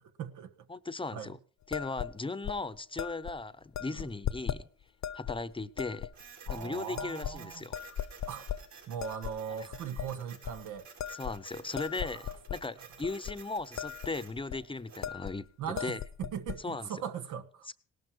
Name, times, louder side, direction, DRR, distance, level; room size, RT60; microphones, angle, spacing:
voice 1, 0.0-0.7 1.1-1.4 3.9-4.1 6.5-7.6 8.3-8.5 8.9-10.9 12.0-12.3 12.8-12.9 15.6-17.7, right 8 dB, 90° right, 1.2 m, -40 dB
voice 2, 0.7-1.4 1.7-4.7 5.1-6.1 6.5-7.8 11.1-15.5 15.8-16.0 16.6-16.9 17.7-17.8, left 3 dB, 15° left, 0.8 m, -37 dB
sound 1, 1.7-2.1 2.4-2.6 3.0-3.3 3.7-4.6 5.0-5.4 5.8-6.1 6.5-6.6 7.0-7.4 7.7-8.6 9.0-9.4 9.7-10.1 10.4-10.6 11.0-12.6 13.0-13.3 13.6-14.1 14.4-14.6 15.0-15.4 15.6-16.6, left 9 dB, 65° left, 0.9 m, -37 dB
Printer, 6.1-15.1, right 7 dB, 70° right, 5.1 m, -53 dB
18.0 x 12.0 x 4.6 m
cardioid pair, 90°, 30 cm